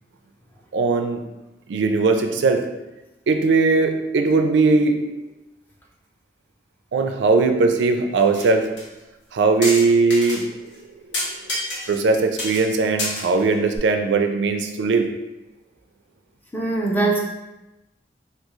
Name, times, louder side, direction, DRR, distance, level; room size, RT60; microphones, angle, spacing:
voice 1, 0.7-1.2 1.7-2.6 3.3-5.1 6.9-8.7 9.3-10.7 11.9-15.1, right 3 dB, 80° right, 5 dB, 0.4 m, -19 dB
sound 1, 8.2-8.5 8.8-8.9 9.6-10.4 10.7-10.8 11.1-12.1 12.4-12.7 13.0-13.8, left 1 dB, 90° left, 0.9 m, -28 dB
voice 2, 16.5-17.2, right 3 dB, 10° left, -2 dB, 0.4 m, -21 dB
3.5 x 2.4 x 3.0 m, 0.98 s
head